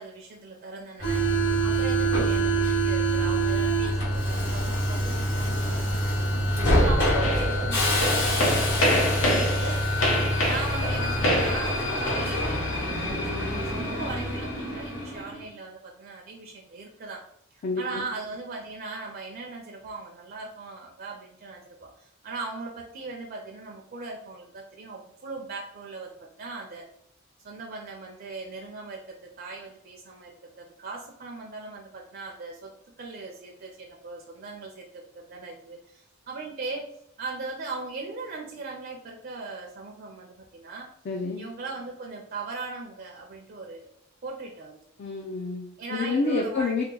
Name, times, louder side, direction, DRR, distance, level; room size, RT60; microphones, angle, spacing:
voice 1, 0.0-9.0 9.3-9.8 10.4-17.2 17.5-26.8 27.4-32.7 33.0-36.9 37.2-40.9 41.4-43.9 44.2-44.8 45.8-46.8, right 3 dB, 50° right, 0 dB, 0.5 m, -39 dB
Subway metro underground, 1.0-15.3, right 1 dB, 65° left, 1.2 m, -25 dB
sound 1, 7.2-12.5, equal, 80° left, 0.9 m, -27 dB
voice 2, 17.6-18.1 41.1-41.4 45.0-46.8, left 3 dB, 50° left, 0 dB, 0.4 m, -28 dB
2.8 x 2.2 x 3.7 m, 0.72 s
head